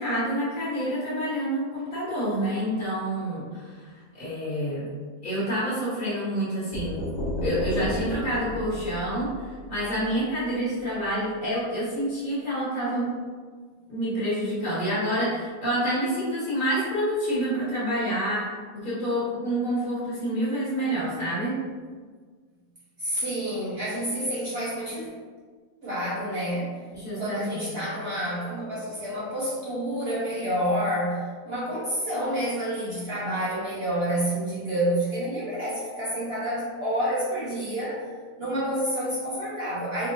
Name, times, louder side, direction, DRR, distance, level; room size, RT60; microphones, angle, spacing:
voice 1, 0.0-4.9 5.2-7.0 7.4-13.1 13.9-18.5 18.7-21.6 26.9-27.8, equal, 30° left, -10 dB, 1.4 m, -28 dB
sound 1, 6.7-10.5, left 1 dB, 70° left, 0.9 m, -33 dB
voice 2, 23.0-25.1 25.8-26.8 27.2-38.0 38.4-40.1, equal, 70° right, -9 dB, 0.6 m, -29 dB
3.5 x 2.3 x 2.9 m, 1.5 s
omnidirectional pair, 2.0 m